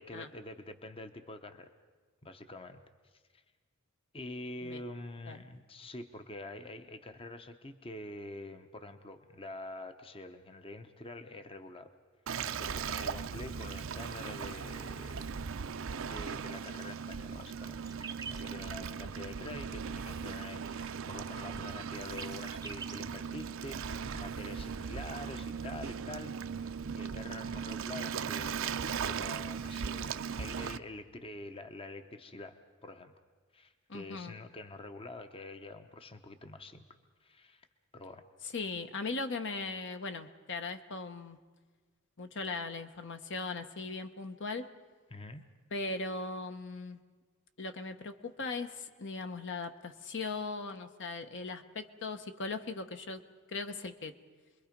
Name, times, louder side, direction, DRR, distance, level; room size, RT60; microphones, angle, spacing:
voice 1, 0.0-1.7 2.2-2.8 4.1-12.0 12.4-15.5 16.1-33.1 33.5-36.8 37.2-37.7 37.9-38.2 45.1-45.4, left 2 dB, 25° left, 8 dB, 0.8 m, -46 dB
Waves surf, 12.3-30.8, right 6 dB, 65° right, 0.6 m, -38 dB
sound 1, 17.8-18.4 19.0-19.3 19.6-19.9 20.1-20.4 20.6-23.7, right 5 dB, 15° right, 0.8 m, -46 dB
voice 2, 33.9-34.3 38.4-41.4 42.2-44.7 45.7-47.0 47.6-53.2 53.5-54.1, left 3 dB, 60° left, 8 dB, 1.0 m, -39 dB
28.5 x 22.0 x 5.2 m, 1.5 s
head